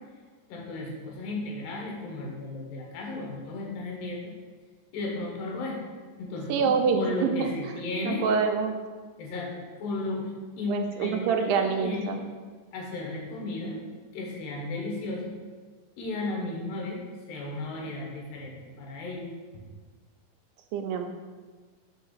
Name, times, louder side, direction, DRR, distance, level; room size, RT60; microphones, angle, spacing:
voice 1, 0.5-4.3 4.9-5.8 6.2-8.3 9.2-10.3 10.6-12.2 12.7-13.8 14.1-15.3 16.0-17.0 17.3-19.3, left 2 dB, 90° left, -1 dB, 3.0 m, -34 dB
voice 2, 6.5-7.7 8.0-8.8 10.7-12.2 20.7-21.1, right 5 dB, 85° right, 5 dB, 2.4 m, -26 dB
6.7 x 3.5 x 5.6 m, 1.4 s
omnidirectional pair, 4.0 m